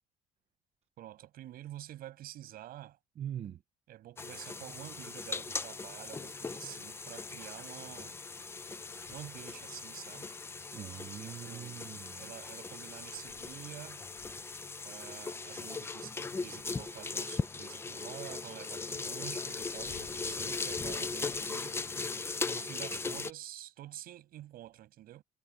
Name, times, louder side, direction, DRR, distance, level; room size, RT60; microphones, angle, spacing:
voice 1, 1.0-3.0 3.9-8.2 9.1-10.3 11.1-11.9 12.2-14.0 14.8-21.8 22.4-25.2, right 13 dB, 75° right, 7.6 m, -48 dB
voice 2, 3.2-3.6 10.7-12.3, right 10 dB, 45° right, 0.8 m, -42 dB
sound 1, 4.2-23.3, left 4 dB, 15° left, 0.6 m, -39 dB
sound 2, 8.2-10.2 10.9-11.0 12.9-15.5 18.8-21.9, left 14 dB, 80° left, 7.7 m, -60 dB
cardioid pair, 160°, 15 cm